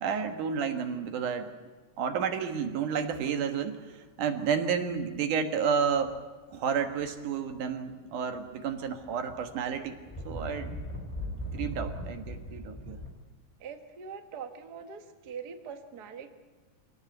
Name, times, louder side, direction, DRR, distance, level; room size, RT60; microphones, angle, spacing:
voice 1, 0.0-1.5 2.0-6.2 6.5-10.0 10.3-10.7 11.5-13.0, right 6 dB, 75° right, 6 dB, 2.9 m, -31 dB
sound 1, 5.0-5.2 5.8-6.3 6.8-8.0 8.3-13.1, equal, 10° left, 2.8 m, -40 dB
voice 2, 13.6-16.3, right 6 dB, 50° right, 6 dB, 1.3 m, -43 dB
25.0 x 18.0 x 8.0 m, 1.4 s
omnidirectional pair, 3.7 m